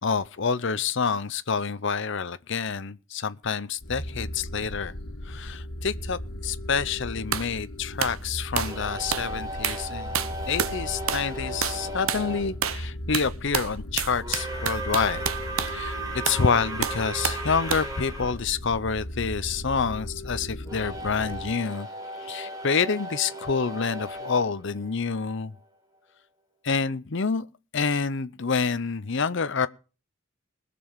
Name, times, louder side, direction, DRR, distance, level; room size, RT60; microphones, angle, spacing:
voice 1, 0.0-4.9 5.2-15.3 15.7-21.9 22.2-25.5 26.6-27.5 27.7-29.7, left 5 dB, 55° left, 0.7 m, -28 dB
sound 1, 3.8-21.5, left 1 dB, 85° left, 1.7 m, -37 dB
sound 2, 7.3-7.5 8.0-8.2 8.6-8.8 9.1-9.3 9.6-9.9 10.1-10.8 11.1-11.3 11.6-11.8 12.1-12.3 12.6-12.9 13.1-15.8 16.3-16.5 16.8-17.4 17.7-17.9, right 8 dB, 75° right, 0.8 m, -29 dB
sound 3, 8.6-12.5 14.2-18.3 20.6-25.5, right 1 dB, 15° right, 4.8 m, -36 dB
20.5 x 6.9 x 5.5 m
head